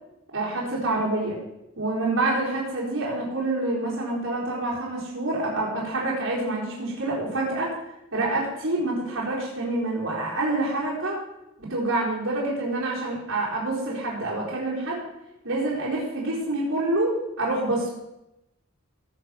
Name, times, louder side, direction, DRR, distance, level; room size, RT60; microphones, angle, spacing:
voice 1, 0.3-1.4 1.8-7.7 8.1-11.2 11.6-15.0 15.4-17.9, right 2 dB, 75° right, -7 dB, 4.2 m, -27 dB
18.0 x 6.8 x 5.8 m, 0.89 s
head